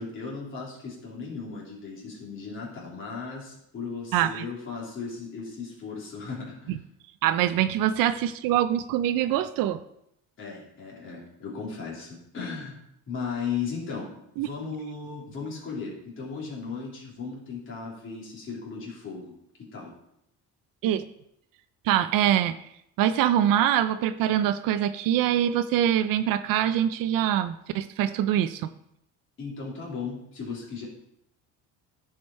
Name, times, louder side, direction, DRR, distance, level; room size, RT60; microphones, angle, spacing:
voice 1, 0.0-6.7 10.4-12.8 13.1-19.3 19.6-19.9 29.4-30.9, left 5 dB, 35° left, -4 dB, 3.0 m, -36 dB
voice 2, 4.1-4.4 6.7-6.8 7.2-9.8 14.4-14.5 20.8-21.0 21.8-22.6 23.0-28.7, right 11 dB, 70° right, 11 dB, 0.6 m, -24 dB
15.0 x 5.0 x 4.2 m, 0.78 s
cardioid pair, 170°, 35 cm